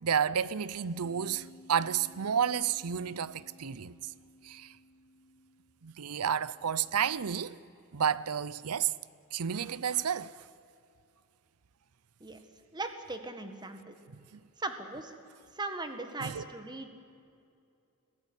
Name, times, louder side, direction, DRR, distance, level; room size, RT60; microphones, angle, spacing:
voice 1, 0.0-4.0 4.4-4.7 5.8-7.6 7.9-8.9 9.3-10.4 14.1-14.4 16.2-16.4, right 8 dB, 90° right, 0.6 m, -31 dB
Bass guitar, 0.8-7.1, equal, 40° right, 5.5 m, -57 dB
voice 2, 12.7-13.9 14.6-15.1 15.6-17.0, right 2 dB, 20° right, 1.8 m, -38 dB
22.0 x 15.5 x 9.8 m
head